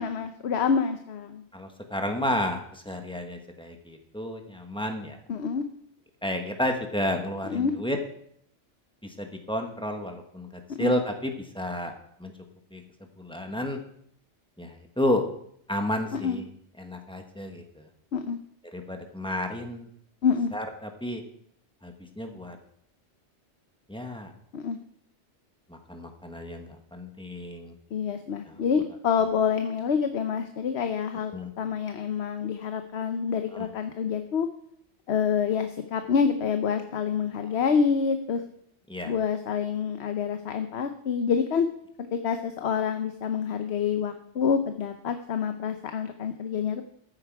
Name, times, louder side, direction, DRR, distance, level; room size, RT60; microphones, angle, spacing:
voice 1, 0.0-1.4 5.3-5.7 7.4-7.7 10.7-10.9 16.1-16.4 18.1-18.4 20.2-20.5 24.5-24.8 27.9-34.5 35.1-38.4 39.0-41.7 42.0-46.8, left 6 dB, 70° left, 8 dB, 1.0 m, -27 dB
voice 2, 1.5-5.2 6.2-8.0 9.0-11.9 12.2-12.3 12.7-12.8 13.2-13.8 14.6-15.2 15.7-16.5 16.8-17.9 18.7-19.9 20.5-21.2 21.8-22.6 23.9-24.3 25.7-27.8 28.4-28.6 31.3-31.5 33.5-33.7 37.4-37.6 38.9-39.1, left 1 dB, 5° left, 4 dB, 1.3 m, -31 dB
14.5 x 8.1 x 4.7 m, 0.68 s
omnidirectional pair, 1.2 m